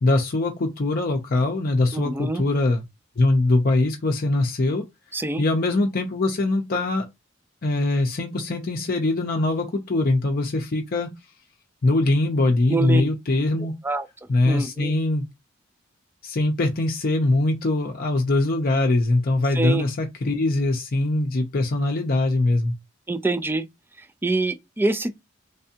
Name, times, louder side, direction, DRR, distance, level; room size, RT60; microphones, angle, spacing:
voice 1, 0.0-2.8 3.2-4.8 5.4-7.1 7.6-11.1 11.8-13.7 14.3-15.3 16.2-22.7, left 2 dB, 45° left, 0.6 m, -22 dB
voice 2, 1.9-2.4 5.1-5.4 12.7-13.0 13.8-14.1 14.5-14.9 19.5-19.9 23.1-23.7 24.2-25.2, right 2 dB, 10° right, 0.3 m, -25 dB
3.4 x 3.3 x 2.8 m
head